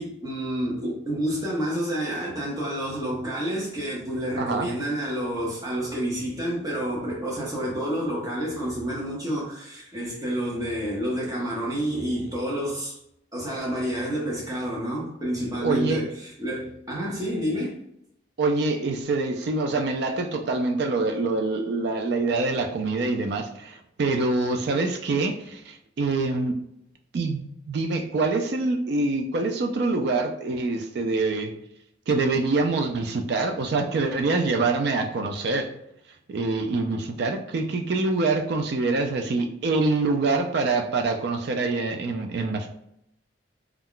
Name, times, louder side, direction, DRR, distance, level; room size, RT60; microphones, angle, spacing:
voice 1, 0.0-12.9 13.3-17.8, equal, 20° right, -4 dB, 0.7 m, -29 dB
voice 2, 4.4-4.7 15.6-16.1 18.4-26.6 27.1-31.5 32.1-35.7 36.3-42.7, right 3 dB, 60° right, 4 dB, 0.4 m, -25 dB
2.3 x 2.1 x 3.7 m, 0.76 s
head